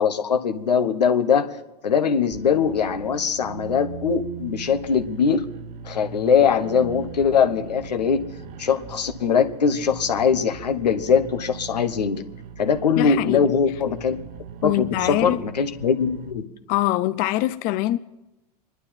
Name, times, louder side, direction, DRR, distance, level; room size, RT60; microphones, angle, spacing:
voice 1, 0.0-1.5 1.8-5.4 5.8-8.2 8.6-12.2 12.6-14.2 14.6-16.5, left 6 dB, 90° left, 1.2 m, -21 dB
sound 1, 2.3-16.3, right 7 dB, 45° right, 1.2 m, -39 dB
voice 2, 13.0-13.5 14.6-15.4 16.7-18.0, left 15 dB, 45° left, 0.5 m, -23 dB
25.5 x 11.0 x 4.3 m
hypercardioid pair, 95°, 20 cm